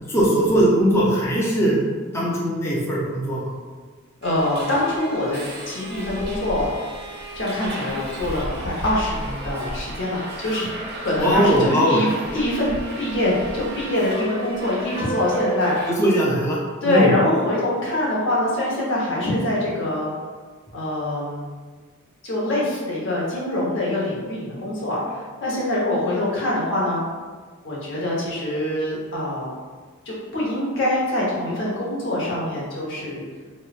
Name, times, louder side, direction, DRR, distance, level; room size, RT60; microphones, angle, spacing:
voice 1, 0.1-1.8 2.1-3.5 11.2-12.0 15.9-16.6 16.8-17.1, equal, 15° left, -5 dB, 0.4 m, -19 dB
voice 2, 4.2-5.4 5.7-6.7 7.3-15.9 16.8-20.1 20.7-21.5 22.2-27.0 27.6-29.5 30.1-33.2, left 1 dB, 60° left, -6 dB, 0.8 m, -24 dB
Subway metro underground, 4.2-15.9, right 1 dB, 50° right, 0.4 m, -33 dB
3.0 x 2.0 x 2.3 m, 1.5 s
head